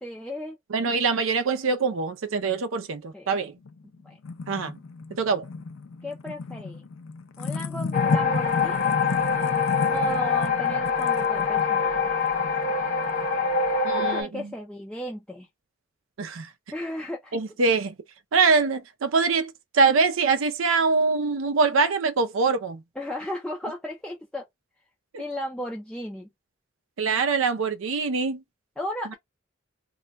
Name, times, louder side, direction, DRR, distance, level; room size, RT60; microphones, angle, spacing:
voice 1, 0.0-0.6 3.1-3.3 4.0-4.2 6.0-6.9 7.4-8.9 9.9-12.1 13.9-15.5 16.7-17.4 23.0-24.5 25.2-26.3 28.8-29.1, left 1 dB, 5° left, 0.4 m, -35 dB
voice 2, 0.7-3.6 4.5-4.8 5.2-5.5 13.8-14.5 16.2-16.5 17.3-18.0 18.3-22.8 25.1-25.2 27.0-28.4, right 4 dB, 85° right, 0.5 m, -24 dB
sound 1, 3.7-13.7, left 4 dB, 90° left, 0.5 m, -33 dB
sound 2, 7.9-14.2, left 5 dB, 40° left, 0.7 m, -25 dB
2.3 x 2.2 x 3.9 m
head